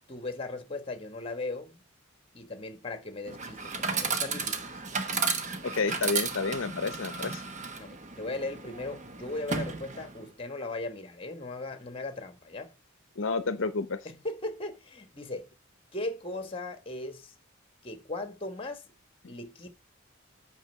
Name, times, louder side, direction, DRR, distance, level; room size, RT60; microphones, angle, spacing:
voice 1, 0.1-1.8 2.3-4.8 7.8-12.7 14.0-15.5 15.9-17.3 17.8-18.8 19.3-19.7, left 2 dB, 25° left, 1.4 m, -38 dB
Chatter / Coin (dropping), 3.3-10.3, right 4 dB, 35° right, 1.0 m, -34 dB
voice 2, 5.6-7.4 13.2-14.0 19.2-19.3, left 4 dB, 65° left, 0.7 m, -30 dB
8.8 x 5.3 x 6.5 m
head